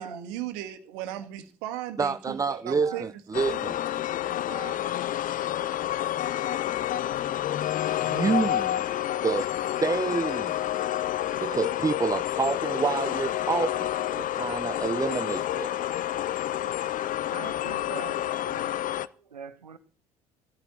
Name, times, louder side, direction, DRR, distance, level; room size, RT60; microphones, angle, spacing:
voice 1, 0.0-3.1 3.5-3.7, right 12 dB, 65° right, 1.7 m, -37 dB
voice 2, 1.1-1.4 2.8-3.0 4.2-4.8 10.6-10.7 17.3-19.8, right 6 dB, 85° right, 1.1 m, -44 dB
voice 3, 2.0-2.9 3.3-3.7 8.0-8.8 9.2-9.5 9.8-10.5 11.4-15.8, right 4 dB, 15° right, 0.6 m, -28 dB
sound 1, 3.3-19.1, left 12 dB, 40° left, 0.7 m, -29 dB
17.0 x 13.5 x 4.2 m
figure-of-eight pair, 55°, 20 cm